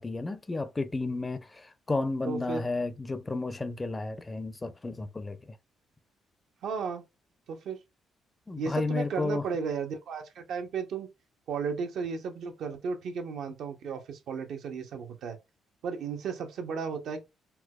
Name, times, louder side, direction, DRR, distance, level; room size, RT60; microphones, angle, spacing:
voice 1, 0.0-5.4 8.5-9.4, left 3 dB, 20° left, 0.4 m, -32 dB
voice 2, 2.2-2.6 6.6-7.0 7.5-7.8 8.6-11.1 11.5-15.4 15.8-17.2, right 5 dB, 75° right, 0.7 m, -34 dB
4.5 x 2.2 x 2.2 m
cardioid pair, 90°, 0 cm